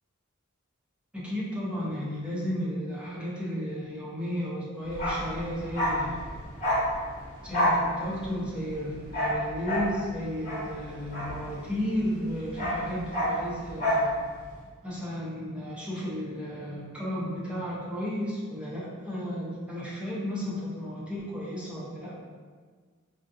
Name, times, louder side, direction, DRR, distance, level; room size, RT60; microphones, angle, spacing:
voice 1, 1.1-6.2 7.4-14.1 14.8-22.2, equal, 5° right, -7 dB, 0.6 m, -33 dB
Bark, 4.9-11.9 12.2-14.1 14.4-14.5, equal, 35° left, 1.2 m, -29 dB
3.7 x 2.3 x 2.6 m, 1.5 s
head